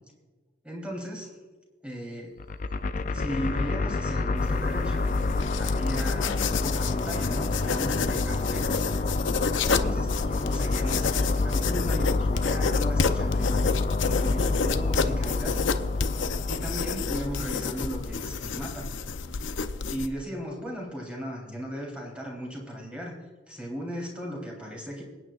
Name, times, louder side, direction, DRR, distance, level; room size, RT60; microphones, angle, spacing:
voice 1, 0.6-1.3 1.8-2.4 3.1-5.1 5.6-8.9 9.6-13.7 14.1-15.6 16.5-18.9 19.9-23.1 23.5-25.0, equal, 5° right, -2 dB, 3.5 m, -36 dB
sound 1, 2.4-18.6, left 3 dB, 40° left, 0.4 m, -28 dB
sound 2, 4.4-20.1, left 5 dB, 85° left, 0.6 m, -30 dB
28.0 x 9.4 x 2.5 m, 1.3 s
head